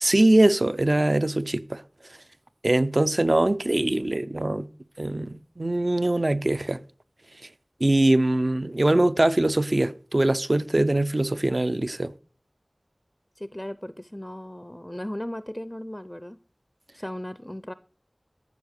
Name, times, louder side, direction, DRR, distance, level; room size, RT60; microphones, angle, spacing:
voice 1, 0.0-1.8 2.6-4.7 5.0-6.8 7.8-12.1, right 1 dB, 55° right, 0.6 m, -22 dB
voice 2, 13.4-16.4 16.9-17.7, left 1 dB, 20° left, 0.5 m, -36 dB
13.5 x 6.3 x 6.5 m
wide cardioid pair, 40°, 0 cm